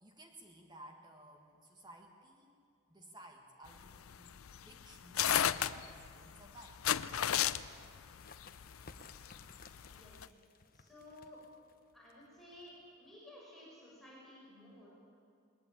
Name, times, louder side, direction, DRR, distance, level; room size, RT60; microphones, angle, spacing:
voice 1, 0.0-2.5 2.9-6.8, right 1 dB, 20° right, 2 dB, 1.7 m, -57 dB
sound 1, 3.7-10.3, left 10 dB, 90° left, 0.6 m, -34 dB
sound 2, 7.7-13.0, left 4 dB, 45° left, 1.0 m, -59 dB
voice 2, 9.9-10.3 10.7-11.4 11.9-14.9, left 1 dB, ahead, -7 dB, 6.2 m, -55 dB
20.5 x 20.5 x 8.8 m, 2.3 s
head